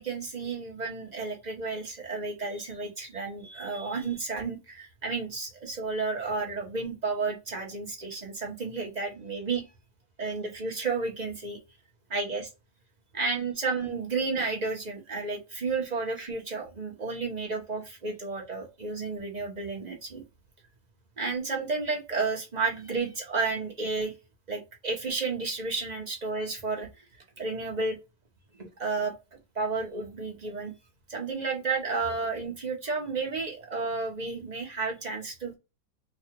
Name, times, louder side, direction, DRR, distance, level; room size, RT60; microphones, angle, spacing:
voice 1, 0.0-9.6 10.2-11.6 12.1-12.5 13.1-20.2 21.2-24.1 24.5-26.9 27.4-28.0 28.6-29.1 29.5-30.7 31.1-35.6, right 4 dB, 30° right, 0 dB, 0.9 m, -32 dB
3.8 x 2.4 x 4.4 m, 0.26 s
omnidirectional pair, 1.9 m